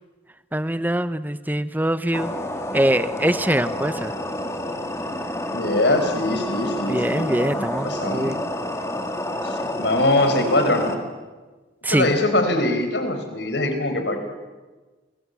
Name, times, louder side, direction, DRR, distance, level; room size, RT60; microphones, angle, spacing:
voice 1, 0.5-2.3 2.7-4.1 6.9-8.4 11.8-12.1, right 1 dB, 10° right, 13 dB, 0.8 m, -23 dB
sound 1, 2.1-11.0, left 1 dB, 15° left, 2.2 m, -29 dB
voice 2, 5.5-8.3 9.4-10.9 11.9-14.2, left 1 dB, 70° left, 6 dB, 4.9 m, -22 dB
29.5 x 22.0 x 8.3 m, 1.3 s
head